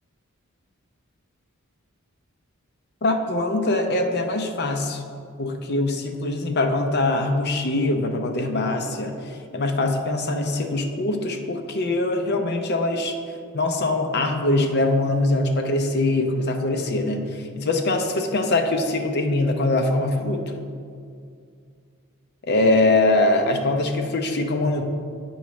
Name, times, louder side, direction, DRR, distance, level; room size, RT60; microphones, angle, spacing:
voice 1, 3.0-5.0 5.4-13.2 13.5-17.2 17.6-20.6 22.5-24.8, left 2 dB, 50° left, 4 dB, 0.6 m, -23 dB
8.6 x 3.1 x 5.8 m, 2.3 s
head